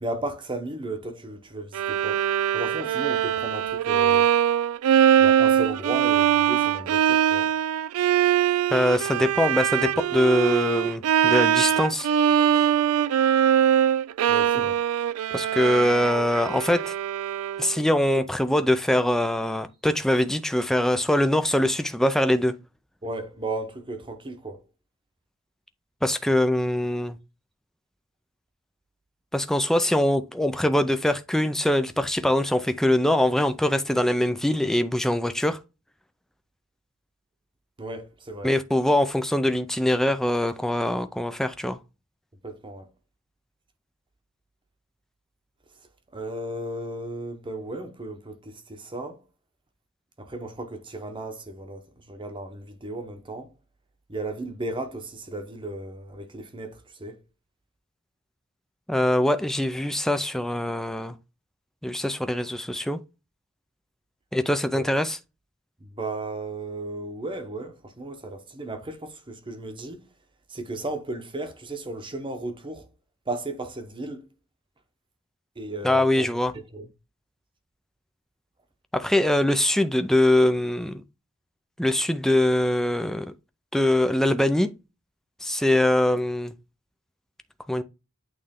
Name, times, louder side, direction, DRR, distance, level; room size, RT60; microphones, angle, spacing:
voice 1, 0.0-2.2 2.5-4.3 5.2-7.6 14.3-14.8 23.0-24.6 37.8-38.5 42.4-42.9 46.1-49.2 50.2-53.5 54.1-57.2 64.8-64.9 65.8-70.1 70.5-72.9 73.3-74.3 75.6-76.9, right 2 dB, 25° right, 0.9 m, -35 dB
Bowed string instrument, 1.7-17.8, right 9 dB, 75° right, 0.3 m, -22 dB
voice 2, 8.7-12.1 15.3-16.9 17.6-22.6 26.0-27.2 29.3-35.6 38.4-41.8 58.9-61.1 61.8-63.0 64.3-65.2 75.8-76.5 78.9-81.0 81.8-83.3 83.7-84.7 85.4-86.5 87.7-87.8, left 1 dB, ahead, 0.4 m, -23 dB
8.7 x 3.2 x 3.6 m
head